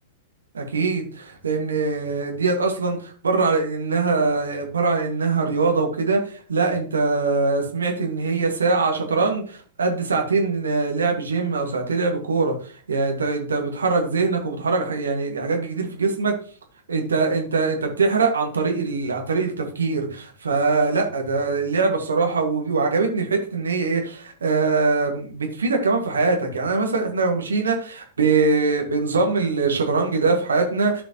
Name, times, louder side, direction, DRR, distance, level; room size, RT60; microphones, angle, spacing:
voice 1, 0.5-16.3 16.9-31.0, right 4 dB, 70° right, 2 dB, 1.8 m, -22 dB
13.0 x 5.0 x 3.0 m, 0.44 s
figure-of-eight pair, 100°, 0 cm